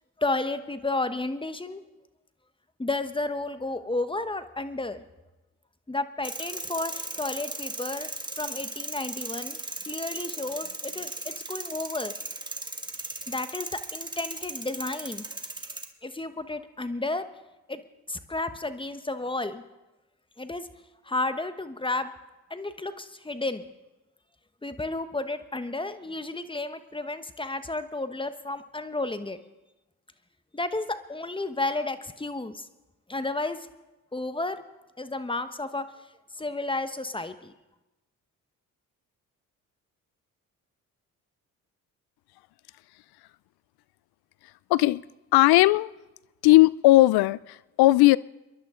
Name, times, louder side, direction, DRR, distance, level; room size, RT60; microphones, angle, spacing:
voice 1, 0.2-1.8 2.8-5.0 5.9-8.1 8.4-12.2 13.3-15.2 16.0-17.2 17.7-17.8 18.1-19.6 20.4-20.7 21.0-22.1 22.5-23.7 24.6-29.4 30.5-32.7 33.1-33.6 34.1-34.6 35.0-35.9 36.4-37.5, left 2 dB, 15° left, 1.1 m, -32 dB
sound 1, 6.2-15.9, right 2 dB, 10° right, 1.6 m, -37 dB
voice 2, 44.7-45.0 45.3-45.9 46.4-48.2, left 18 dB, 75° left, 0.5 m, -18 dB
29.5 x 11.0 x 3.8 m
supercardioid pair, 65°, 38 cm